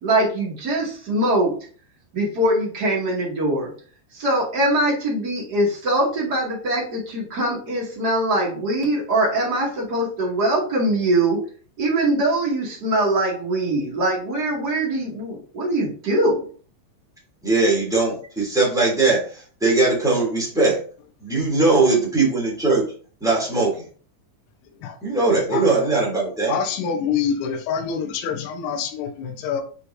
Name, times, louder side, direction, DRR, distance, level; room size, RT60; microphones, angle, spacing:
voice 1, 0.0-1.5 2.1-3.7 4.1-11.4 11.8-16.4, right 1 dB, 45° right, -5 dB, 1.3 m, -22 dB
voice 2, 17.4-20.8 21.2-22.9 23.2-23.9 25.0-26.6, right 3 dB, ahead, -5 dB, 1.0 m, -20 dB
voice 3, 26.5-29.6, left 7 dB, 80° left, 4 dB, 3.6 m, -26 dB
9.4 x 4.3 x 2.7 m, 0.41 s
omnidirectional pair, 5.9 m